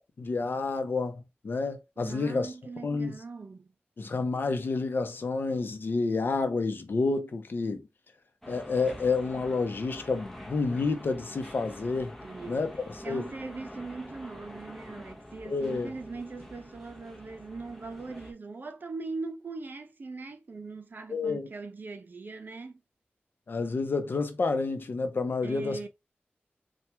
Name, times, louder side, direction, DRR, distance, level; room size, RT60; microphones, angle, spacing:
voice 1, 0.2-2.5 2.8-3.2 4.0-7.8 8.5-12.1 12.5-13.3 15.4-15.9 21.1-21.5 23.5-25.9, left 4 dB, 60° left, 0.7 m, -29 dB
voice 2, 2.0-3.7 12.2-12.7 13.0-22.8 25.4-25.9, right 3 dB, 55° right, 0.7 m, -40 dB
sound 1, 8.4-18.3, equal, 5° left, 0.9 m, -46 dB
4.4 x 2.4 x 3.3 m
wide cardioid pair, 115°, 4 cm